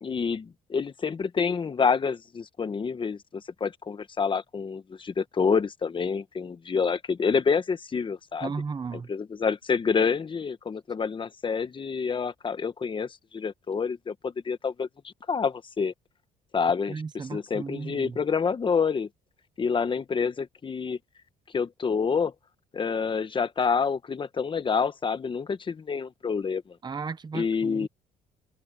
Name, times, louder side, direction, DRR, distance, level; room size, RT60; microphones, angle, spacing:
voice 1, 0.0-8.5 8.9-15.9 16.5-16.9 17.3-19.1 19.6-21.0 21.5-22.3 22.7-26.7 27.3-27.9, left 5 dB, 30° left, 1.3 m, -28 dB
voice 2, 8.4-9.1 16.9-18.2 26.8-27.9, right 5 dB, 25° right, 1.1 m, -35 dB
cardioid pair, 110°, 17 cm